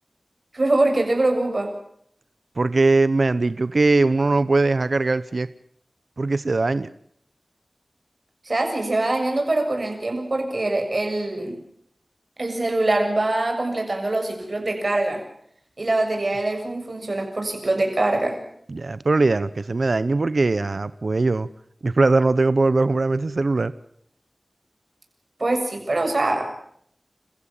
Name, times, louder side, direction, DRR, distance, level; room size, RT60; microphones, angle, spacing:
voice 1, 0.5-1.7 8.4-11.6 12.4-15.2 15.8-18.4 25.4-26.5, right 2 dB, 60° right, 4 dB, 7.1 m, -23 dB
voice 2, 2.6-5.5 6.2-6.9 18.7-21.5 21.8-23.7, right 3 dB, 75° right, 15 dB, 0.8 m, -20 dB
30.0 x 15.5 x 7.3 m, 0.68 s
wide cardioid pair, 40°, 0 cm